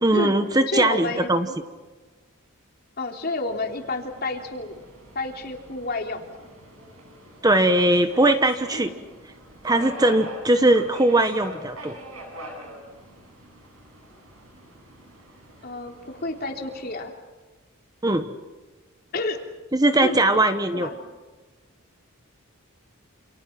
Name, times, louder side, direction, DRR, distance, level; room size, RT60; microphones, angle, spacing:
voice 1, 0.0-1.5 7.4-8.9 9.6-12.0 18.0-18.3 19.7-20.9, right 1 dB, 20° right, 8 dB, 1.1 m, -20 dB
voice 2, 0.7-1.5 3.0-4.8 5.2-6.5 8.7-8.9 15.6-17.1 19.1-19.4 20.0-20.2 20.7-21.0, left 2 dB, 45° left, 3 dB, 3.4 m, -30 dB
Subway metro underground, 3.4-17.0, right 1 dB, 85° right, 8.0 m, -44 dB
29.0 x 28.0 x 6.0 m, 1.3 s
head